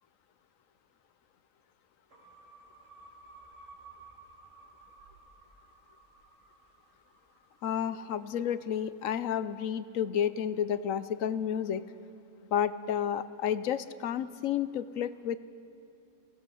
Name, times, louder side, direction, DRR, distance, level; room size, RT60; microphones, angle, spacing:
sound 1, 2.1-8.5, right 3 dB, 55° right, 4.0 m, -56 dB
voice 1, 7.6-11.8 12.5-15.4, left 9 dB, 70° left, 14 dB, 1.0 m, -31 dB
24.5 x 17.0 x 6.3 m, 2.8 s
omnidirectional pair, 1.5 m